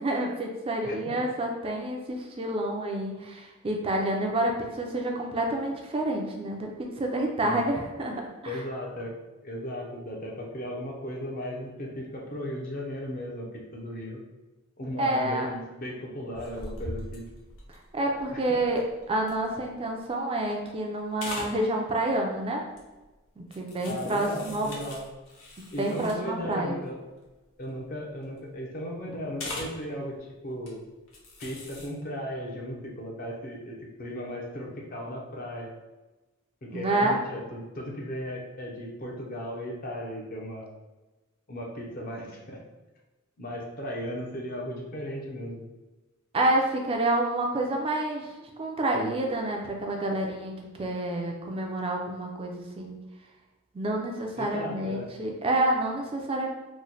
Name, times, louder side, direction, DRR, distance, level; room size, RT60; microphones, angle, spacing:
voice 1, 0.0-8.6 15.0-15.5 17.7-18.8 19.1-22.6 23.4-24.7 25.8-26.8 36.7-37.2 46.3-50.5 50.8-53.0 53.7-56.5, right 1 dB, 25° right, 1 dB, 0.4 m, -28 dB
voice 2, 0.8-1.2 7.4-7.7 8.4-9.2 9.4-14.2 14.8-17.3 18.1-18.6 23.8-25.0 25.7-27.0 27.6-30.8 31.4-35.7 36.6-40.7 41.5-42.6 43.4-45.7 54.4-55.1, equal, 45° left, -1 dB, 0.7 m, -36 dB
sound 1, 16.3-20.0 20.4-20.8 21.1-21.6 22.7-23.0 23.5-26.4 26.8-26.9 27.2-27.4 27.7-28.4 29.4-29.8 30.5-30.7 31.1-31.9, left 1 dB, 90° left, 0.8 m, -41 dB
3.0 x 2.1 x 3.9 m, 1.1 s
head